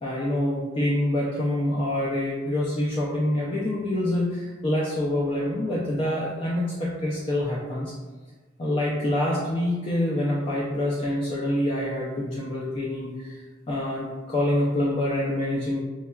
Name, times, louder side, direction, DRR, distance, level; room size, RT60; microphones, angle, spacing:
voice 1, 0.0-7.9 8.6-13.4 13.7-15.8, left 1 dB, 30° left, -5 dB, 0.4 m, -26 dB
5.2 x 2.3 x 2.2 m, 1.3 s
head